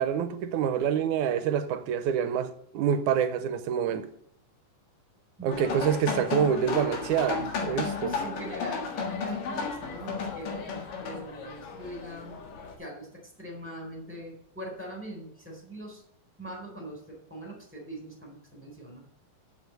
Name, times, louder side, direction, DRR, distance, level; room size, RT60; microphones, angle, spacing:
voice 1, 0.0-4.1 5.4-8.1, right 8 dB, 80° right, 2.0 m, -27 dB
voice 2, 5.4-5.9 8.0-12.4 12.8-16.0 16.4-19.0, right 1 dB, 5° right, 3.4 m, -42 dB
sound 1, 5.5-12.7, left 5 dB, 85° left, 3.3 m, -34 dB
7.3 x 6.9 x 8.0 m
omnidirectional pair, 3.8 m